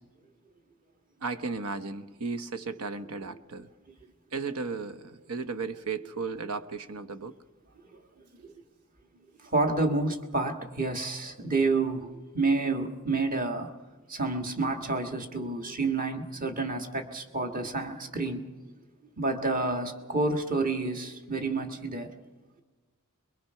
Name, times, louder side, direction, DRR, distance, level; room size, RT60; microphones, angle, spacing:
voice 1, 1.2-3.7 4.3-7.4, right 4 dB, 85° right, 1.2 m, -35 dB
voice 2, 9.4-13.7 14.1-18.4 19.2-22.1, right 3 dB, 40° right, 1.9 m, -29 dB
23.5 x 22.5 x 5.8 m
head